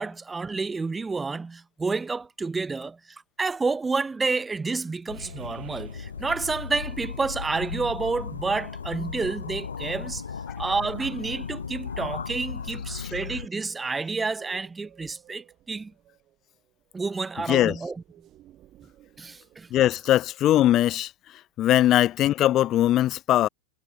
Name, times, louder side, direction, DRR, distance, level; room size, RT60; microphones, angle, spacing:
voice 1, 0.0-10.2 10.6-15.9 16.9-18.0 19.2-19.7, right 4 dB, 10° right, 1.9 m, -29 dB
sound 1, 5.1-13.5, left 6 dB, 70° left, 2.9 m, -36 dB
sound 2, 5.1-20.1, right 13 dB, 35° right, 4.0 m, -56 dB
voice 2, 19.7-21.1 21.6-23.5, left 13 dB, 30° left, 0.7 m, -21 dB
figure-of-eight pair, 90°, 0 cm